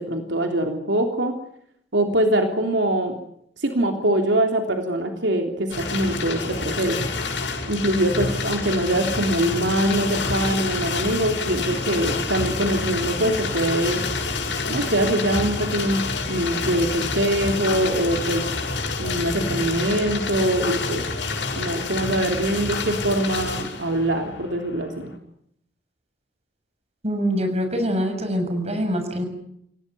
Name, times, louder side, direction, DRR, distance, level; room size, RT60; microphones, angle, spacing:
voice 1, 0.0-1.4 1.9-3.2 3.6-7.1 7.7-14.0 14.7-18.4 19.0-21.0 21.5-25.1, right 1 dB, 80° right, 4 dB, 3.3 m, -23 dB
sound 1, 5.7-25.1, left 3 dB, 85° left, 6.6 m, -28 dB
voice 2, 27.0-29.3, equal, 35° right, 6 dB, 7.1 m, -24 dB
28.5 x 17.5 x 9.4 m, 0.72 s
head